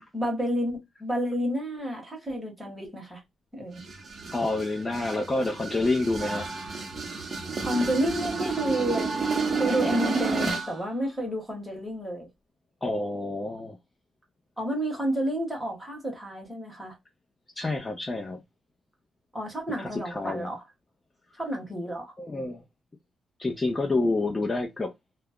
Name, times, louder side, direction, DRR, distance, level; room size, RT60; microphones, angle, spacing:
voice 1, 0.0-3.2 3.5-3.8 7.6-12.3 14.6-16.9 19.3-20.6 21.4-22.2, equal, ahead, 1.1 m, -30 dB
sound 1, 3.8-10.8, right 4 dB, 40° right, 0.7 m, -30 dB
voice 2, 4.3-6.6 10.3-10.6 12.8-13.8 17.6-18.4 19.8-20.5 22.2-22.6 23.4-24.9, left 2 dB, 20° left, 0.4 m, -28 dB
2.3 x 2.0 x 3.4 m
cardioid pair, 130°, 0 cm